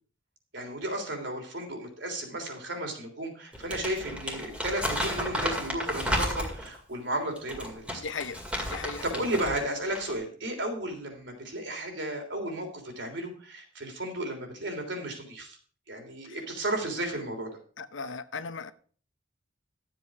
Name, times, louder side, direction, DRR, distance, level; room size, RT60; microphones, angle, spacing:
voice 1, 0.5-8.0 8.7-8.8 9.0-15.6 15.9-17.5, right 1 dB, 60° right, 3.3 m, -34 dB
Crumpling crinkling, 3.5-6.8 7.4-9.6 9.9-10.1, equal, 5° right, 2.1 m, -32 dB
voice 2, 8.0-8.4 8.7-9.2 16.2-16.4 17.8-18.7, left 5 dB, 70° left, 0.8 m, -37 dB
12.5 x 7.8 x 4.9 m
head